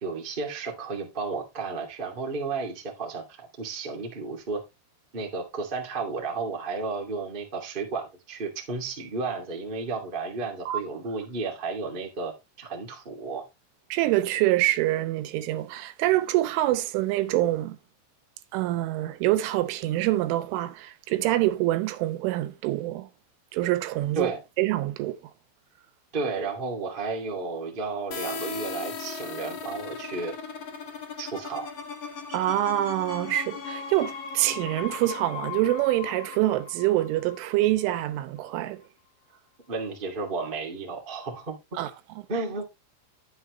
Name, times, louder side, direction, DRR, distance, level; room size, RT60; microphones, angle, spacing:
voice 1, 0.0-4.6 5.1-13.4 24.1-24.4 26.1-30.3 31.2-31.7 39.7-41.8 42.3-42.6, right 4 dB, 25° right, 1.1 m, -33 dB
voice 2, 13.9-17.8 18.5-23.1 23.5-24.3 24.6-25.2 32.3-38.8 41.8-41.9, right 15 dB, 85° right, 3.3 m, -25 dB
sound 1, 28.1-37.7, left 5 dB, 65° left, 1.6 m, -37 dB
10.5 x 7.9 x 3.2 m
omnidirectional pair, 5.5 m